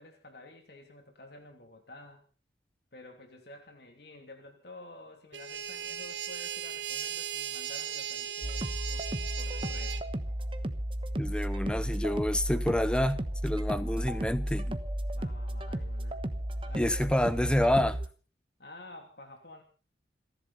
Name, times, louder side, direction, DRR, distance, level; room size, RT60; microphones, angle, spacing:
voice 1, 0.0-2.2 2.9-9.1 9.4-10.0 15.1-16.2 16.6-17.2 18.6-19.6, left 2 dB, 55° left, 2.9 m, -51 dB
sound 1, 5.3-10.0, right 8 dB, 75° right, 1.3 m, -37 dB
sound 2, 8.4-18.1, right 1 dB, 30° right, 1.1 m, -34 dB
voice 2, 11.2-14.8 16.7-18.0, left 1 dB, 5° left, 0.7 m, -28 dB
28.5 x 11.0 x 4.2 m
head